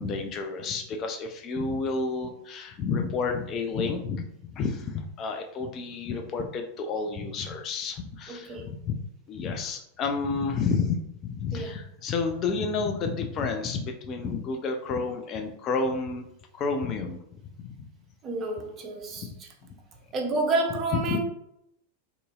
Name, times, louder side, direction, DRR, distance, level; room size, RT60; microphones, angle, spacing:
voice 1, 0.0-9.0 9.3-11.0 11.2-16.3 16.5-17.2 17.6-17.9 19.2-19.3 20.9-21.2, left 4 dB, 30° left, 0.3 m, -30 dB
voice 2, 8.3-8.7 11.5-11.7 18.2-19.5 20.1-21.2, right 2 dB, 30° right, 0.5 m, -29 dB
2.7 x 2.6 x 2.3 m
figure-of-eight pair, 90°, 0 cm